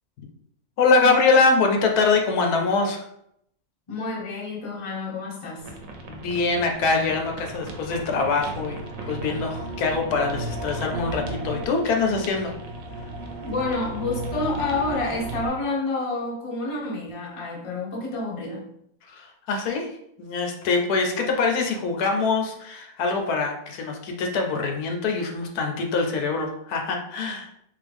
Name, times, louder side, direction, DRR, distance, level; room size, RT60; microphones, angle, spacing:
voice 1, 0.8-3.1 6.1-12.5 19.1-19.9 20.2-27.6, left 4 dB, 80° left, 3 dB, 1.2 m, -24 dB
voice 2, 3.9-5.7 13.4-18.7, left 3 dB, 30° left, -3 dB, 0.7 m, -29 dB
sound 1, 5.6-15.5, right 2 dB, 65° right, 1.0 m, -35 dB
3.7 x 3.0 x 3.4 m, 0.75 s
omnidirectional pair, 1.6 m